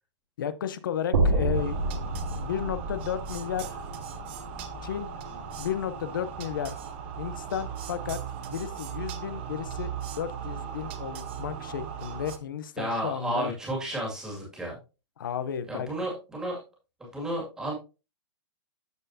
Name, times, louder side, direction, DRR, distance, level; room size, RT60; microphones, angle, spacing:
voice 1, 0.4-1.8 2.3-3.8 4.8-6.8 7.2-8.2 8.5-13.5 15.2-15.9, left 9 dB, 45° left, 0.7 m, -33 dB
sound 1, 1.1-5.3, right 2 dB, 85° right, 2.4 m, -29 dB
sound 2, 1.5-12.4, right 7 dB, 20° right, 0.6 m, -38 dB
voice 2, 12.8-14.8 15.7-16.6 17.0-17.7, right 1 dB, 5° right, 2.2 m, -32 dB
13.0 x 4.5 x 2.7 m
hypercardioid pair, 175°, 15 cm